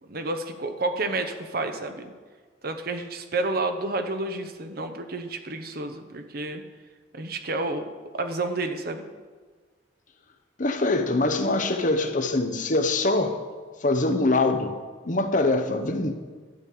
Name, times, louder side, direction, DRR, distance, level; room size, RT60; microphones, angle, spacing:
voice 1, 0.0-2.1 2.6-6.6 7.1-7.9 8.1-9.0, right 2 dB, 55° right, 7 dB, 0.9 m, -30 dB
voice 2, 10.6-13.4 13.8-14.7 15.0-16.2, left 2 dB, 45° left, 7 dB, 0.9 m, -23 dB
12.0 x 5.3 x 8.5 m, 1.5 s
head